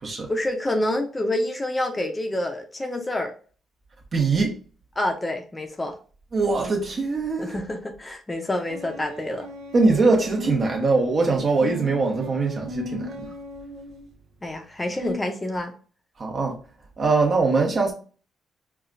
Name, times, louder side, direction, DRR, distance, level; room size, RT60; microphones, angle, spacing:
voice 1, 0.3-3.3 5.0-6.0 7.4-9.5 14.4-15.7, left 1 dB, 20° left, 0.6 m, -27 dB
voice 2, 4.1-4.5 6.3-7.6 9.7-13.3 16.2-16.6 17.0-17.9, right 3 dB, 45° right, 1.2 m, -22 dB
sound 1, 8.7-11.1 11.6-14.1 15.0-15.2, equal, 80° right, 0.6 m, -37 dB
4.8 x 2.4 x 2.5 m
cardioid pair, 90°, 0 cm